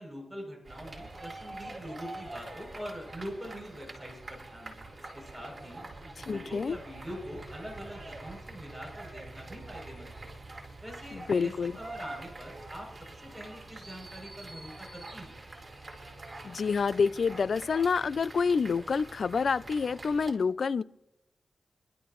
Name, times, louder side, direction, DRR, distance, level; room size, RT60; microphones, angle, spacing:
voice 1, 0.0-5.8 6.3-10.3 10.8-12.9 13.2-15.4, equal, ahead, 7.5 m, -44 dB
sound 1, 0.7-20.3, right 2 dB, 35° right, 4.0 m, -45 dB
voice 2, 6.2-6.8 11.1-11.8 16.4-20.8, left 5 dB, 70° left, 0.4 m, -28 dB
26.0 x 12.0 x 3.1 m
cardioid pair, 60°, 0 cm